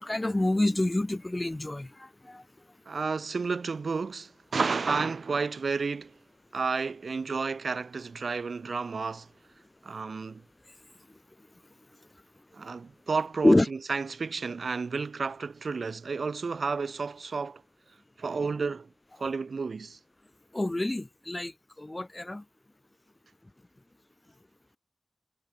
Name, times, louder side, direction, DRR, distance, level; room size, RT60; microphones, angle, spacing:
voice 1, 0.0-1.9 2.3-2.4 13.4-13.7 20.5-21.5 21.8-22.4, left 1 dB, 25° left, 1.5 m, -26 dB
voice 2, 2.9-6.1 6.5-9.3 9.8-10.4 12.5-17.6 18.2-18.9 19.2-20.0, right 4 dB, 80° right, 1.7 m, -31 dB
wide cardioid pair, 65°, 0 cm